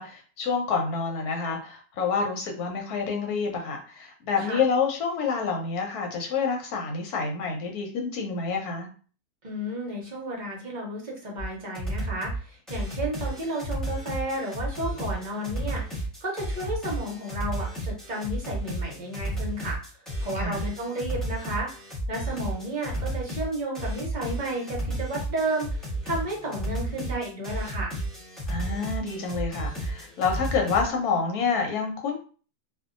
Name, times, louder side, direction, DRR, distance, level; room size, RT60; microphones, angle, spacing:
voice 1, 0.0-8.9 20.4-20.6 28.5-32.1, left 5 dB, 80° left, 2 dB, 1.2 m, -28 dB
voice 2, 9.4-19.8 20.2-21.7 22.1-28.0, right 1 dB, 40° right, -2 dB, 0.7 m, -32 dB
sound 1, 11.4-11.5 11.7-12.4 12.7-30.8, right 1 dB, ahead, 0.8 m, -32 dB
2.6 x 2.3 x 2.5 m, 0.39 s
omnidirectional pair, 1.6 m